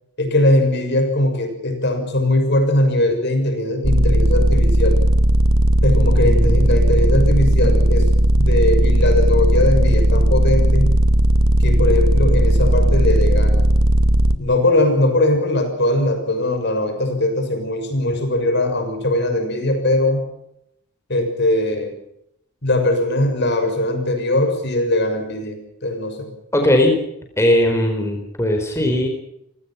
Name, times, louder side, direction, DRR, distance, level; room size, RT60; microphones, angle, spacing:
voice 1, 0.2-5.0 5.8-8.1 8.4-11.0 11.6-13.7 14.4-20.2 21.1-21.9 22.6-26.3, left 1 dB, 50° left, 7 dB, 6.4 m, -20 dB
sound 1, 3.8-14.4, right 1 dB, 75° right, 1.8 m, -15 dB
voice 2, 6.2-6.8 26.5-27.0 27.4-29.1, left 1 dB, 10° left, 3 dB, 4.5 m, -19 dB
29.0 x 19.0 x 5.8 m, 0.78 s
head